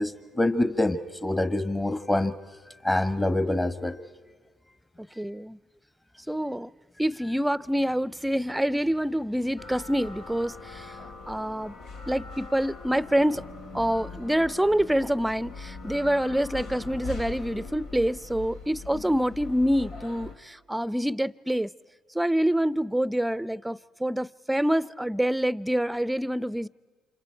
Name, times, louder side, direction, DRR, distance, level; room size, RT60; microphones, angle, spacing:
voice 1, 0.0-2.3 2.8-4.0 5.1-5.2, left 1 dB, 20° left, 1.3 m, -26 dB
voice 2, 5.0-5.6 6.3-6.7 7.0-11.0 11.3-11.7 12.1-13.4 13.7-21.7 22.1-26.7, equal, 5° right, 0.6 m, -26 dB
sound 1, 9.6-20.4, left 3 dB, 85° left, 2.1 m, -41 dB
29.5 x 27.0 x 4.5 m
hypercardioid pair, 55°, 0 cm